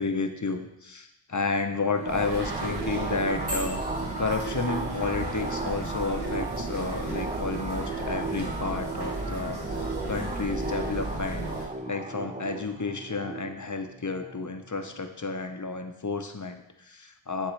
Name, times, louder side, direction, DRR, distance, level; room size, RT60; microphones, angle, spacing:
voice 1, 0.0-3.8 4.2-17.5, left 4 dB, 40° left, 6 dB, 0.6 m, -31 dB
sound 1, 2.0-15.2, right 3 dB, 15° right, 0.4 m, -36 dB
sound 2, 2.1-11.6, right 2 dB, 55° right, 1.3 m, -34 dB
10.0 x 3.6 x 3.2 m, 0.83 s
wide cardioid pair, 40°, 48 cm